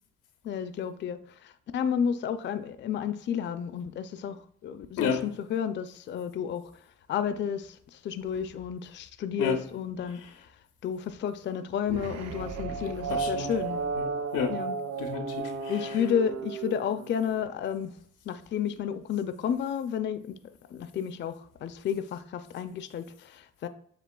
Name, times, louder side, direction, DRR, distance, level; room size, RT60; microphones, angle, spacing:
voice 1, 0.4-6.7 7.1-10.2 10.8-13.8 14.5-14.8 15.4-18.0 18.3-20.4 20.7-23.7, left 8 dB, 40° left, 0.4 m, -31 dB
sound 1, 11.9-17.4, right 5 dB, 60° right, 0.6 m, -34 dB
voice 2, 12.8-13.5 13.9-14.6 15.0-15.7, left 6 dB, 90° left, 0.8 m, -31 dB
7.4 x 2.9 x 2.3 m
cardioid pair, 90°, 30 cm